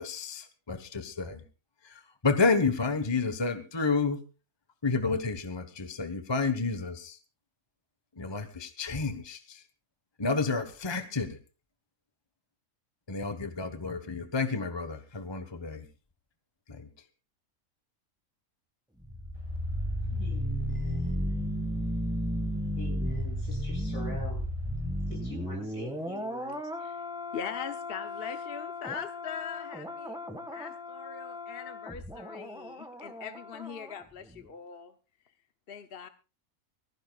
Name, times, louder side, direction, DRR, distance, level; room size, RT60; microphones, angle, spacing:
voice 1, 0.0-1.4 1.8-4.2 4.8-7.2 8.2-9.6 10.2-11.4 13.1-15.8 16.7-16.8, left 4 dB, 20° left, 9 dB, 1.1 m, -30 dB
sound 1, 19.0-34.0 34.3-34.4, equal, 5° right, 1.6 m, -34 dB
voice 2, 19.3-26.7, left 1 dB, 65° left, 0 dB, 8.7 m, -46 dB
voice 3, 27.3-30.2 30.5-34.9 35.7-36.1, left 7 dB, 50° left, 9 dB, 0.9 m, -41 dB
24.0 x 15.5 x 2.4 m, 0.32 s
omnidirectional pair, 1.5 m